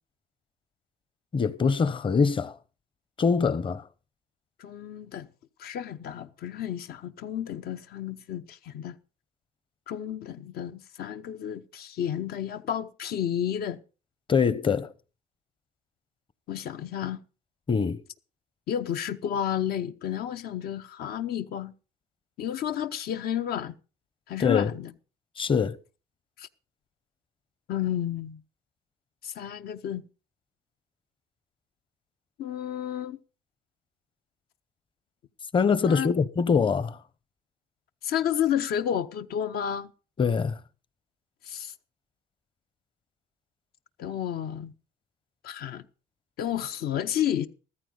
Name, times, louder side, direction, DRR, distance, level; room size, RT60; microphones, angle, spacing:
voice 1, 1.3-2.5 3.2-3.8 14.3-14.9 17.7-18.0 24.4-24.7 25.4-25.8 35.5-37.0 40.2-40.6, left 5 dB, 30° left, 0.8 m, -23 dB
voice 2, 4.6-5.3 5.6-8.9 9.9-13.8 16.5-17.2 18.7-21.7 22.4-23.7 24.3-24.9 26.4-26.5 27.7-28.4 29.2-30.1 32.4-33.2 35.9-36.1 38.0-39.9 41.4-41.7 44.0-44.7 45.4-45.8 46.4-47.5, left 10 dB, 65° left, 0.8 m, -31 dB
14.0 x 14.0 x 3.9 m
cardioid pair, 110°, 17 cm